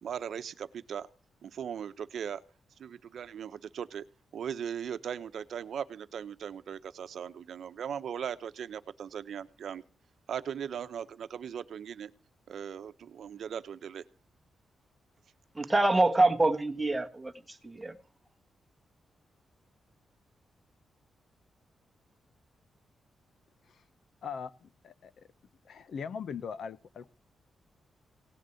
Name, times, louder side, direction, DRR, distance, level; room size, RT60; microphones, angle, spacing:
voice 1, 0.0-1.1 1.4-2.4 2.8-4.0 4.3-9.8 10.3-12.1 12.5-14.0, right 8 dB, 65° right, 0.9 m, -38 dB
voice 2, 15.5-18.0, right 2 dB, 10° right, 1.6 m, -26 dB
voice 3, 24.2-25.1 25.6-27.1, left 6 dB, 60° left, 1.0 m, -40 dB
18.0 x 6.7 x 9.2 m
wide cardioid pair, 155°, 0 cm